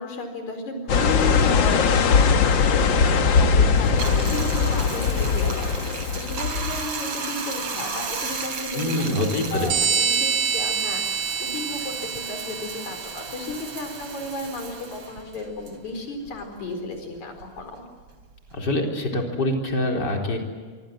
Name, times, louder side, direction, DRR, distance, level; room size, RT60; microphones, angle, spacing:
voice 1, 0.0-17.7, left 2 dB, 70° left, 5 dB, 5.8 m, -34 dB
sound 1, 0.9-6.9, left 5 dB, 50° left, 1.5 m, -20 dB
Bathtub (filling or washing), 3.8-16.6 16.9-18.8, right 4 dB, 50° right, 3.8 m, -35 dB
voice 2, 8.7-9.7 18.5-20.4, left 1 dB, 35° left, 1 dB, 4.4 m, -25 dB
sound 2, 9.7-14.0, right 6 dB, 85° right, 3.9 m, -27 dB
26.0 x 24.0 x 7.7 m, 1.5 s
omnidirectional pair, 3.5 m